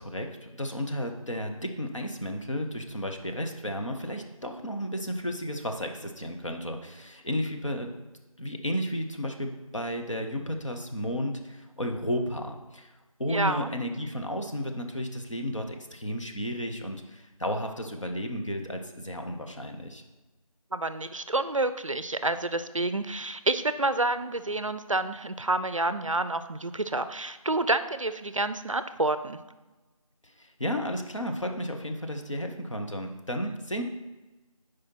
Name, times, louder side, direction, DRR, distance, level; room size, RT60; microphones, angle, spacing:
voice 1, 0.0-7.9 8.4-12.9 13.2-20.0 30.2-33.8, equal, 55° left, 3 dB, 0.8 m, -33 dB
voice 2, 13.3-13.7 20.7-29.4, right 2 dB, 60° right, 12 dB, 0.4 m, -28 dB
9.8 x 4.9 x 2.9 m, 1.1 s
figure-of-eight pair, 175°, 19 cm